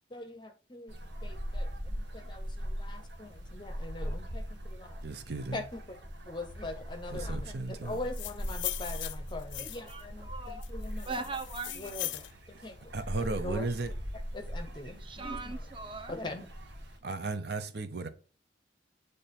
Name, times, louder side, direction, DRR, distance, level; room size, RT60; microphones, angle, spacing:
voice 1, 0.1-0.9 1.2-5.0 5.5-6.0 6.3-11.2 11.7-12.3 12.6-12.9 13.2-13.6 14.3-15.6 16.1-16.5, left 2 dB, 25° left, 0.6 m, -42 dB
sound 1, 0.9-17.0, equal, 85° right, 1.3 m, -40 dB
voice 2, 5.0-5.6 7.1-8.0 12.5-13.9 17.0-18.1, right 3 dB, 60° right, 0.7 m, -35 dB
sound 2, 7.9-10.0 10.6-12.3, left 15 dB, 90° left, 0.4 m, -39 dB
voice 3, 9.6-10.6 11.0-12.1 15.0-16.2, right 3 dB, 25° right, 0.7 m, -40 dB
8.6 x 3.3 x 4.1 m
head